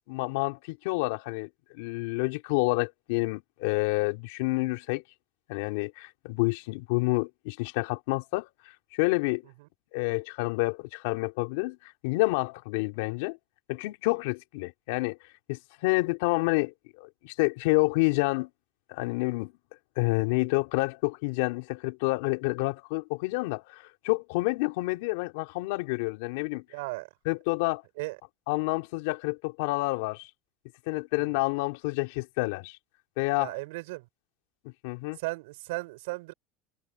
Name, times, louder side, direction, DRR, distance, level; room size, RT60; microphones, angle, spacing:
voice 1, 0.1-1.5 1.7-5.0 5.5-8.4 8.9-9.4 9.9-13.4 13.7-15.2 15.5-18.5 18.9-19.5 20.0-26.6 27.3-27.8 28.5-30.3 30.9-32.8 33.2-33.5 34.8-35.2, left 24 dB, 80° left, 4.0 m, -28 dB
voice 2, 26.7-27.1 28.0-28.2 31.1-31.4 33.4-34.1 35.2-36.3, right 23 dB, 80° right, 5.9 m, -36 dB
supercardioid pair, 120°, 0 cm